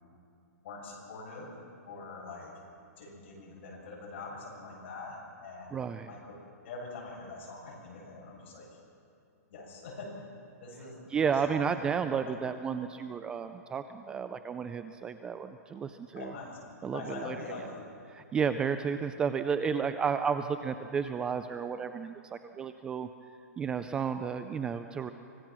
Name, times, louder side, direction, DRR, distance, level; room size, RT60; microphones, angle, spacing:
voice 1, 0.6-1.5 1.9-2.5 3.0-6.4 6.6-8.7 9.5-10.3 10.6-11.8 12.2-12.3 16.1-16.6 16.9-17.8, left 3 dB, 45° left, -3 dB, 7.4 m, -44 dB
voice 2, 5.7-6.1 11.1-16.3 16.8-17.4 18.1-23.1 23.6-25.1, right 6 dB, 10° right, 10 dB, 0.4 m, -32 dB
25.5 x 18.0 x 6.1 m, 2.6 s
hypercardioid pair, 165°, 9 cm